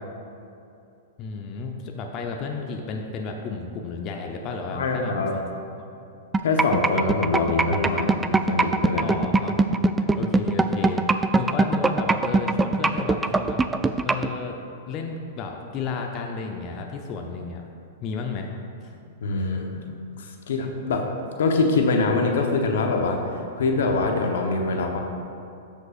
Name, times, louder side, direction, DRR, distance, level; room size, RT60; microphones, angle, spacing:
voice 1, 1.2-5.4 5.8-5.9 9.0-9.6 10.0-13.7 14.0-14.6 14.9-17.6 18.0-18.5 18.8-18.9, left 4 dB, 40° left, 2 dB, 0.6 m, -33 dB
voice 2, 4.7-5.4 6.4-9.2 19.2-19.9 20.2-21.0 21.4-25.0, left 3 dB, 70° left, 3 dB, 0.9 m, -24 dB
sound 1, 6.3-14.3, right 3 dB, 15° right, 0.3 m, -20 dB
13.5 x 5.3 x 2.5 m, 2.6 s
hypercardioid pair, 110°, 0 cm